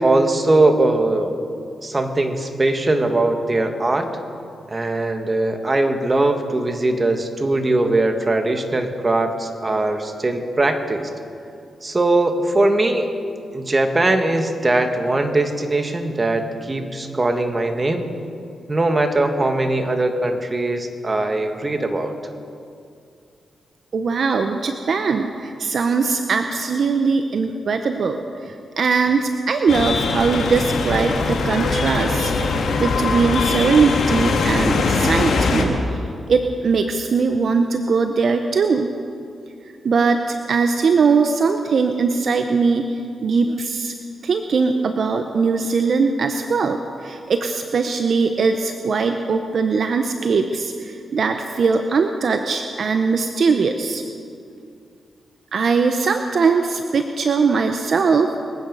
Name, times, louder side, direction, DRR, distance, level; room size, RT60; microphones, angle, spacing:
voice 1, 0.0-1.4 1.8-4.1 4.7-11.1 11.8-13.1 13.5-18.1 18.7-22.1, right 2 dB, 35° right, 6 dB, 1.9 m, -20 dB
voice 2, 23.9-28.2 28.5-32.3 32.8-35.8 36.3-38.9 39.8-42.9 43.2-43.9 44.2-54.0 55.5-58.3, right 4 dB, 65° right, 6 dB, 0.8 m, -20 dB
sound 1, 29.7-35.6, left 4 dB, 75° left, 1.9 m, -21 dB
24.5 x 9.3 x 5.5 m, 2.5 s
supercardioid pair, 50°, 0 cm